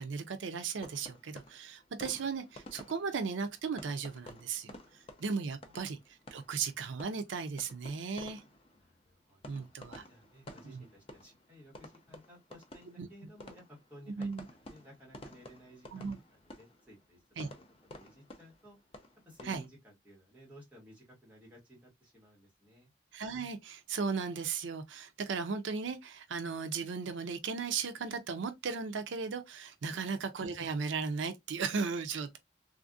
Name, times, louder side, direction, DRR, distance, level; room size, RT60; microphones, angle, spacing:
voice 1, 0.0-4.8 5.2-8.4 9.5-10.0 10.7-10.8 13.0-13.1 14.2-14.4 15.9-16.2 17.4-17.5 19.5-19.6 23.1-32.4, right 5 dB, 85° right, 0.5 m, -36 dB
sound 1, 0.8-19.7, left 1 dB, 30° left, 0.5 m, -53 dB
voice 2, 8.8-9.7 10.0-14.3 14.6-17.5 17.9-18.8 19.3-22.9 29.9-30.1, equal, 10° right, 1.6 m, -57 dB
3.3 x 2.5 x 2.5 m
head